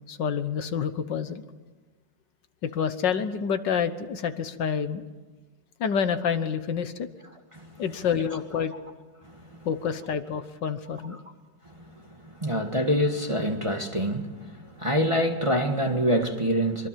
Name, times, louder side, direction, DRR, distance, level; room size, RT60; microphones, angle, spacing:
voice 1, 0.1-1.4 2.6-5.0 5.8-7.1 7.8-8.7 9.6-11.2, left 7 dB, 70° left, 1.8 m, -28 dB
voice 2, 9.2-9.7 11.8-16.9, equal, 20° right, 1.5 m, -26 dB
25.0 x 23.0 x 7.5 m
omnidirectional pair, 2.0 m